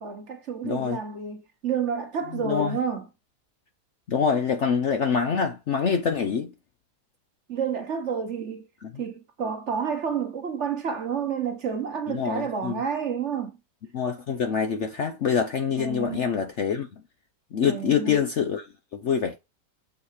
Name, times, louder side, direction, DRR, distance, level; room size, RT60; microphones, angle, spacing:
voice 1, 0.0-3.1 7.5-8.7 9.0-13.6 15.8-16.4 17.6-18.2, right 6 dB, 45° right, 1.3 m, -30 dB
voice 2, 0.6-1.0 2.4-2.8 4.1-6.5 8.8-8.9 12.1-12.8 13.9-17.0 17.5-18.7 18.9-19.4, left 6 dB, 55° left, 0.8 m, -25 dB
6.7 x 4.2 x 4.8 m
omnidirectional pair, 1.8 m